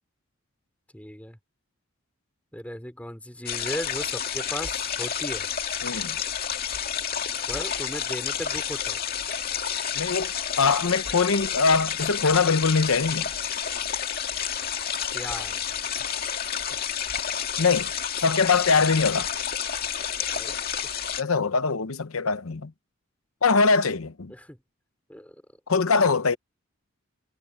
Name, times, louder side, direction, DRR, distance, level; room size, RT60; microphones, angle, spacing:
voice 1, 0.9-1.4 2.5-5.5 7.5-9.0 15.1-15.6 20.3-20.6 24.3-24.6 25.1-25.4 26.0-26.4, equal, 5° left, 3.7 m, -37 dB
sound 1, 3.5-21.2, left 8 dB, 45° left, 2.3 m, -30 dB
voice 2, 5.8-6.2 10.0-10.3 10.6-13.3 17.6-17.9 18.2-19.3 21.2-22.7 23.4-24.3 25.7-26.4, left 4 dB, 80° left, 0.9 m, -22 dB
head